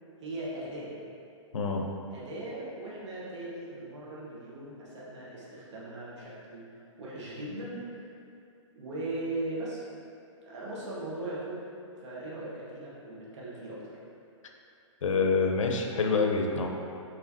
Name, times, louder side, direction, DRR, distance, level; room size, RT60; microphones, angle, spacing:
voice 1, 0.2-0.9 2.1-6.7 7.0-8.1 8.7-9.8 10.4-11.6 12.0-14.0, right 2 dB, 65° right, -7 dB, 1.3 m, -38 dB
voice 2, 1.5-1.9 15.0-16.7, left 4 dB, 80° left, 2 dB, 0.6 m, -26 dB
4.9 x 3.1 x 2.7 m, 2.6 s
hypercardioid pair, 135°, 16 cm